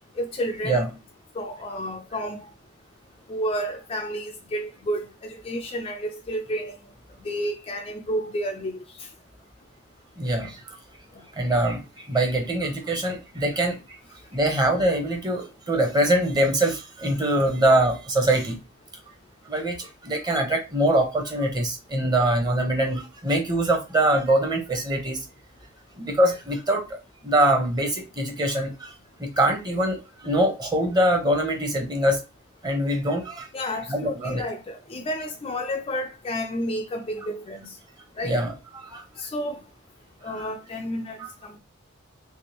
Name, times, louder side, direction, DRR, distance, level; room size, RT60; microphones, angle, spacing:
voice 1, 0.2-0.9 1.3-2.5 3.3-6.8 7.2-9.1 11.1-11.2 33.5-37.8 38.2-38.4 39.2-39.6 40.2-41.6, equal, 25° left, 0.4 m, -31 dB
voice 2, 10.2-10.8 11.4-14.0 14.3-18.6 19.4-25.3 26.0-28.9 29.2-32.2 32.6-33.5 33.9-34.4 38.2-39.0, right 1 dB, 20° right, 0.9 m, -23 dB
3.4 x 3.3 x 2.9 m
head